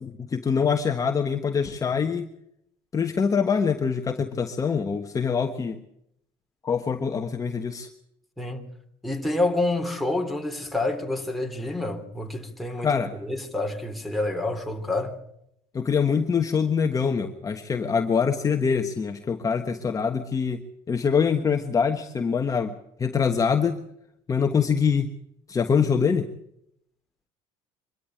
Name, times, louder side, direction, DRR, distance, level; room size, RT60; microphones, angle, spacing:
voice 1, 0.0-2.3 2.9-5.8 6.6-7.9 12.8-13.1 15.7-20.6 20.9-23.8 24.3-25.1 25.5-26.3, left 6 dB, 25° left, 1.3 m, -24 dB
voice 2, 9.0-15.2, left 2 dB, ahead, 3.2 m, -28 dB
24.0 x 13.0 x 8.7 m
supercardioid pair, 105°, 13 cm